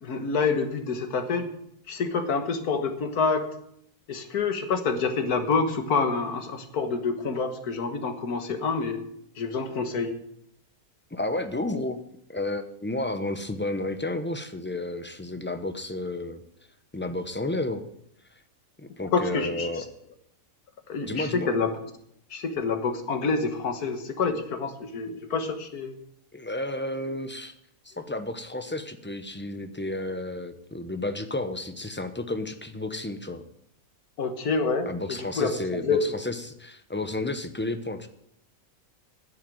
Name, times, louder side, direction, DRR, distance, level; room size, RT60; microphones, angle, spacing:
voice 1, 0.0-1.5 1.9-3.5 4.1-9.0 9.4-10.1 19.1-19.8 20.9-21.7 22.3-26.0 34.2-36.0, left 4 dB, 80° left, 8 dB, 1.9 m, -27 dB
voice 2, 11.1-12.0 12.3-16.4 16.9-17.8 18.8-19.8 21.0-21.5 26.3-27.5 27.8-33.4 34.9-38.1, left 2 dB, 10° left, 9 dB, 0.5 m, -32 dB
10.0 x 7.9 x 9.1 m, 0.74 s
omnidirectional pair, 1.6 m